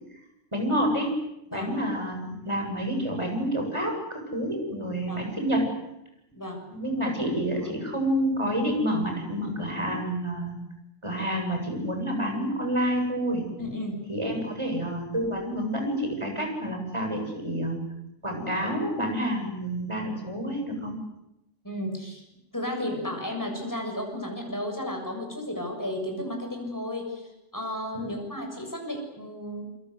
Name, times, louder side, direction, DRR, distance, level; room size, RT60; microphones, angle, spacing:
voice 1, 0.5-1.1 1.5-5.7 6.7-10.6 11.0-13.4 14.1-17.8 18.2-20.9 27.9-28.1, equal, 20° right, 2 dB, 7.9 m, -28 dB
voice 2, 13.6-14.0 21.6-22.2 22.5-27.3 27.5-29.7, left 1 dB, 15° left, 2 dB, 7.4 m, -33 dB
28.5 x 23.5 x 8.2 m, 0.86 s
omnidirectional pair, 1.3 m